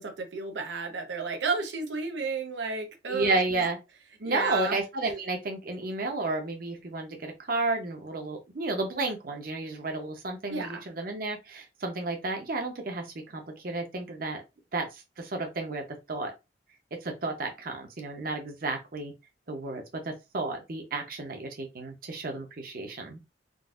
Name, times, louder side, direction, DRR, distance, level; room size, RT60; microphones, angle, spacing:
voice 1, 0.0-3.6 4.2-4.8 10.5-10.8, right 4 dB, 90° right, 0.7 m, -32 dB
voice 2, 3.1-3.8 4.2-14.4 14.7-16.3 17.0-19.1 19.5-23.2, right 2 dB, 55° right, 0.8 m, -32 dB
3.8 x 2.5 x 2.4 m
head